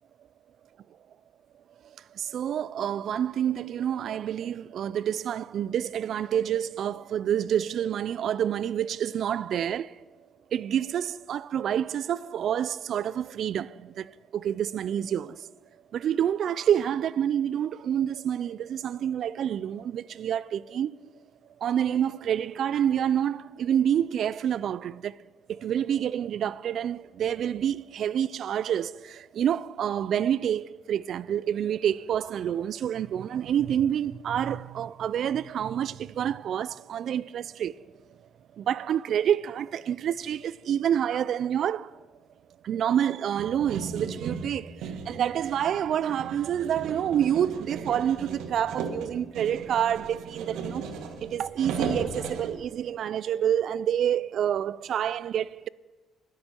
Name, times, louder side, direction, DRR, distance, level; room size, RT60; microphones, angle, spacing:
voice 1, 2.1-10.0 10.5-15.5 15.9-21.0 21.6-25.2 25.5-37.8 38.6-42.0 42.6-50.8 51.2-55.7, right 9 dB, 50° right, 0.3 m, -28 dB
sound 1, 43.4-52.5, right 5 dB, 80° right, 1.4 m, -36 dB
21.0 x 9.7 x 4.4 m
cardioid pair, 145°, 0 cm